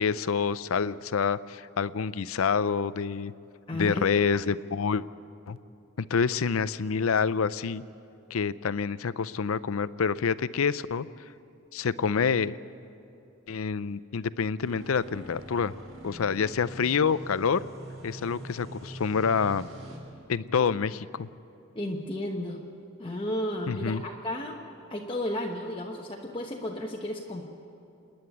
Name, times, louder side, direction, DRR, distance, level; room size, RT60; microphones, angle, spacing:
voice 1, 0.0-3.3 3.8-5.0 5.5-5.6 6.1-7.8 8.3-11.1 11.7-12.6 13.5-15.7 16.0-17.6 18.0-19.7 20.3-21.3 23.7-24.0, left 6 dB, 85° left, 16 dB, 0.5 m, -27 dB
voice 2, 3.7-4.1 21.7-22.6 23.0-24.6 24.9-27.4, left 1 dB, 25° left, 0 dB, 1.1 m, -33 dB
sound 1, 14.6-20.0, right 1 dB, 85° right, 5.4 m, -44 dB
27.0 x 10.5 x 9.5 m, 2.8 s
head